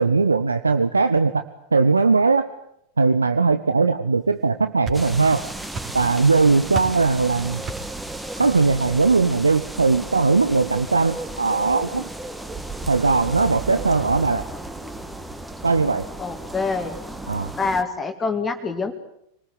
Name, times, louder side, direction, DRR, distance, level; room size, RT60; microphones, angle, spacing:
voice 1, 0.0-1.4 1.7-2.5 3.0-5.4 5.9-7.6 8.4-12.1 12.9-14.4 15.6-16.1 17.3-17.5, right 4 dB, 75° right, 10 dB, 1.0 m, -19 dB
sound 1, 4.4-5.4 5.7-6.3 6.7-7.1 7.7-8.0, right 4 dB, 25° right, 4.0 m, -33 dB
sound 2, 4.9-17.8, right 2 dB, 5° right, 1.9 m, -34 dB
voice 2, 16.2-17.0 17.6-18.9, left 4 dB, 15° left, 5 dB, 2.2 m, -25 dB
26.0 x 20.0 x 9.4 m, 0.78 s
figure-of-eight pair, 90°, 0 cm